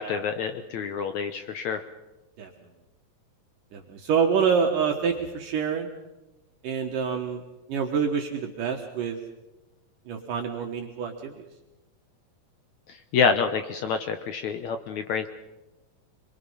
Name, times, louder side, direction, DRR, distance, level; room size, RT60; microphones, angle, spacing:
voice 1, 0.0-1.8 12.9-15.3, left 5 dB, 70° left, 8 dB, 1.9 m, -27 dB
voice 2, 3.7-5.9 6.6-7.4 7.7-9.2 10.1-11.4, right 6 dB, 65° right, 2 dB, 2.9 m, -26 dB
27.0 x 22.0 x 5.7 m, 1.0 s
omnidirectional pair, 4.3 m